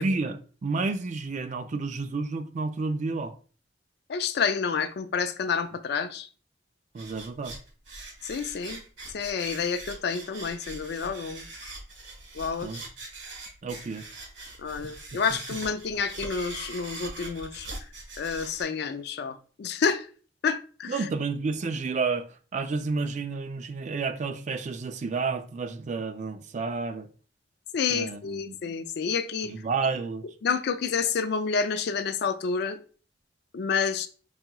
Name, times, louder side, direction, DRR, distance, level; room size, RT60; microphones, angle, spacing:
voice 1, 0.0-3.3 6.9-7.5 12.6-12.8 13.6-14.1 20.9-22.3 22.5-27.1 27.9-28.6 29.4-30.2, right 4 dB, 40° right, 0.4 m, -30 dB
voice 2, 4.1-6.3 8.2-8.8 9.1-11.5 12.3-12.7 14.6-17.7 18.2-20.1 20.4-21.1 27.7-29.5 30.4-32.8 33.5-34.1, left 6 dB, 60° left, 0.4 m, -29 dB
sound 1, 7.0-18.6, right 2 dB, 75° right, 1.4 m, -42 dB
5.6 x 2.8 x 2.2 m
head